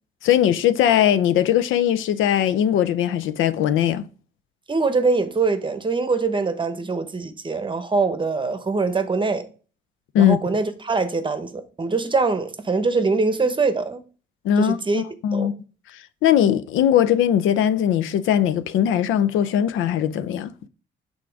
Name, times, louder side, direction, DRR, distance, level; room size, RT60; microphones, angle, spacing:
voice 1, 0.2-4.1 10.1-10.4 14.4-15.5 15.9-20.5, left 10 dB, 80° left, 0.5 m, -20 dB
voice 2, 4.7-9.5 10.2-14.0 14.6-15.0 15.3-15.5, right 3 dB, 25° right, 0.9 m, -23 dB
6.0 x 3.7 x 4.6 m
cardioid pair, 90°, 20 cm